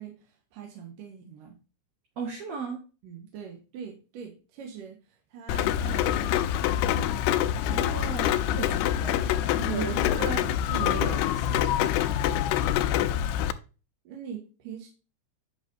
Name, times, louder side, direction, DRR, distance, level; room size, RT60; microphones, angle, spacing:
voice 1, 0.0-1.6 3.0-6.5 6.9-7.1 9.5-10.3 10.6-11.0 11.4-11.6 12.3-12.6 14.0-14.9, right 7 dB, 65° right, 2.5 m, -42 dB
voice 2, 2.2-2.8 7.5-11.8, right 5 dB, 85° right, 1.4 m, -37 dB
Rain, 5.5-13.5, left 11 dB, 80° left, 2.5 m, -26 dB
9.3 x 6.1 x 2.6 m
omnidirectional pair, 5.0 m